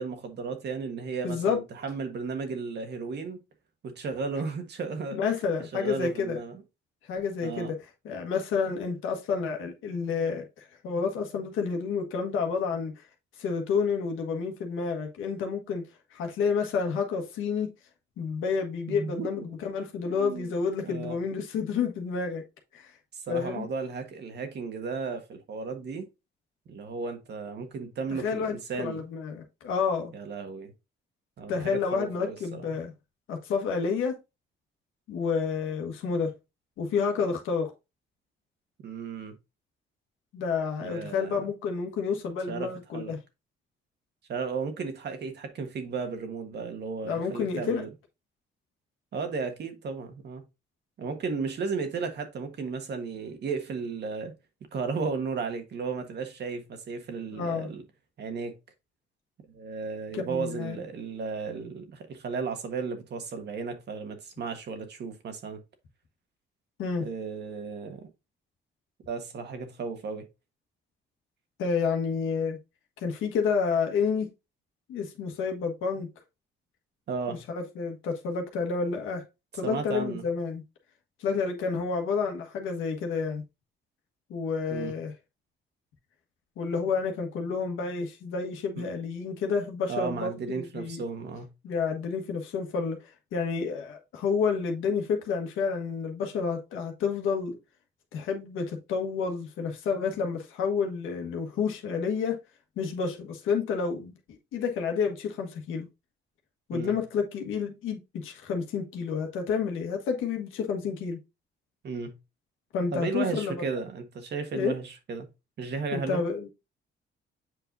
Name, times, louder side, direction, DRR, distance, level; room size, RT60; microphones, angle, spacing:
voice 1, 0.0-3.4 3.8-5.2 5.6-6.6 7.4-7.8 18.9-19.5 20.1-20.5 20.8-21.2 23.1-26.1 26.7-29.0 30.1-30.7 31.4-32.7 38.8-39.4 40.8-41.5 42.5-43.2 44.3-47.9 49.1-50.4 51.0-54.3 54.7-57.8 58.2-58.6 59.5-65.6 67.0-68.1 69.1-70.3 77.1-77.4 79.6-80.2 84.7-85.0 88.8-88.9 89.9-91.5 106.7-107.0 111.8-112.2 112.9-115.3 115.6-116.2, right 5 dB, 60° right, 1.5 m, -34 dB
voice 2, 1.2-1.6 5.1-6.4 7.1-7.7 8.0-13.0 13.4-17.7 18.2-22.4 22.7-22.9 23.3-23.7 28.1-30.1 31.5-32.9 33.3-34.2 35.1-36.3 36.8-37.7 40.3-43.2 47.0-47.8 57.3-57.7 60.1-60.8 66.8-67.1 71.6-72.6 73.0-74.3 74.9-76.1 77.3-79.2 79.5-80.6 81.2-83.4 84.3-85.1 86.6-91.0 91.6-97.6 98.1-102.4 102.8-104.1 104.5-105.9 106.7-111.2 112.7-113.5 114.5-114.7 115.9-116.5, left 5 dB, 85° left, 1.5 m, -30 dB
7.7 x 4.8 x 2.6 m
cardioid pair, 90°, 20 cm